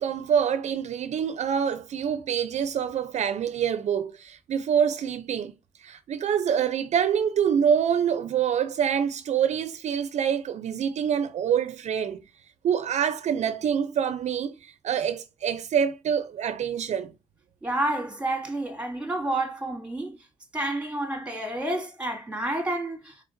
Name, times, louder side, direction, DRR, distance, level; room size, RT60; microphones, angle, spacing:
voice 1, 0.0-5.5 5.8-12.2 12.6-17.1, right 8 dB, 65° right, 0.4 m, -26 dB
voice 2, 17.6-20.2 20.5-23.2, right 1 dB, 10° right, 2.2 m, -29 dB
4.9 x 4.3 x 2.5 m
cardioid pair, 80°, 12 cm